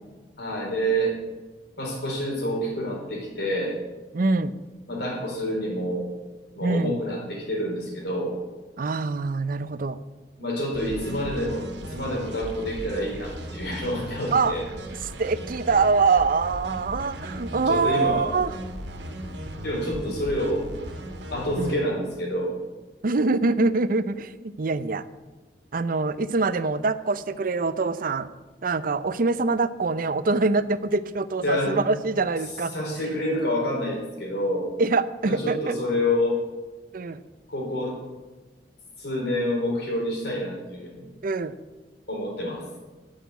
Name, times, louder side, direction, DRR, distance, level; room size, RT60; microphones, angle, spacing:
voice 1, 0.4-1.2 1.8-3.8 4.9-6.1 6.6-8.4 10.4-11.6 11.9-14.6 17.7-18.3 19.6-20.6 21.3-22.6 31.4-31.8 32.7-34.7 35.2-36.4 37.5-38.0 39.0-41.1 42.1-42.6, equal, 65° left, -1 dB, 3.8 m, -27 dB
voice 2, 4.1-4.5 6.6-7.0 8.8-10.0 14.3-14.5 15.2-18.5 21.6-21.7 23.0-25.0 25.7-28.3 28.6-32.7 34.8-35.7 36.9-37.2 41.2-41.5, right 3 dB, 50° right, 14 dB, 0.6 m, -24 dB
sound 1, 10.7-21.7, right 1 dB, 75° right, 1.8 m, -37 dB
10.0 x 6.6 x 8.2 m, 1.2 s
head